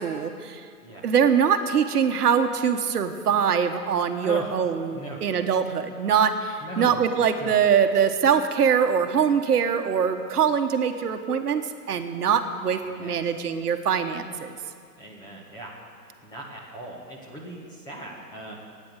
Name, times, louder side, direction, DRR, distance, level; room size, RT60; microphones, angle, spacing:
voice 1, 0.0-0.6 1.0-11.6 11.9-14.6, right 7 dB, 70° right, 7 dB, 1.3 m, -23 dB
voice 2, 6.6-7.1 7.4-7.6 12.8-13.2 15.0-15.7 16.2-18.5, right 1 dB, 10° left, -2 dB, 1.4 m, -38 dB
15.0 x 9.6 x 8.1 m, 2.2 s
hypercardioid pair, 160°, 48 cm